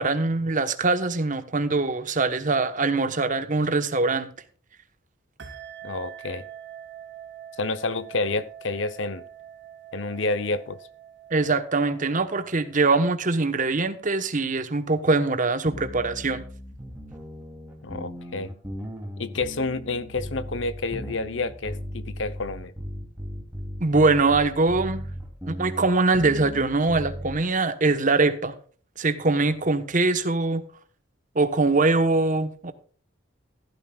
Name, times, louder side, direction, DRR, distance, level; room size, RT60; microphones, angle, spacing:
voice 1, 0.0-4.3 11.3-16.4 23.8-25.0 25.4-28.5 29.0-30.6 31.3-32.7, right 3 dB, 40° right, 1.2 m, -23 dB
sound 1, 5.4-13.5, right 9 dB, 60° right, 2.0 m, -45 dB
voice 2, 5.8-6.4 7.6-9.2 9.9-10.8 17.8-18.5 19.2-22.7, left 3 dB, 65° left, 0.9 m, -29 dB
sound 2, 15.7-27.5, equal, 10° right, 2.9 m, -37 dB
15.0 x 12.5 x 2.4 m
head